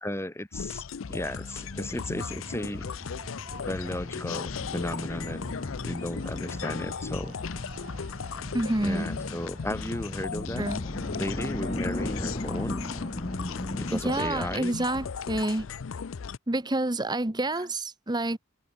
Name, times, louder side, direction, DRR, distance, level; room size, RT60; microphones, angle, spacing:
voice 1, 0.0-2.9 3.6-5.5 5.8-7.3 8.8-10.6 11.1-12.8 13.7-14.7, left 1 dB, 15° left, 1.9 m, -34 dB
sound 1, 0.5-16.4, left 6 dB, 80° left, 0.5 m, -37 dB
sound 2, 1.1-13.6, right 3 dB, 40° right, 5.0 m, -52 dB
sound 3, 1.7-14.0, left 1 dB, 35° left, 1.6 m, -38 dB
voice 2, 8.5-9.1 10.6-10.8 13.9-15.7 16.5-18.4, right 2 dB, 20° right, 1.2 m, -28 dB
head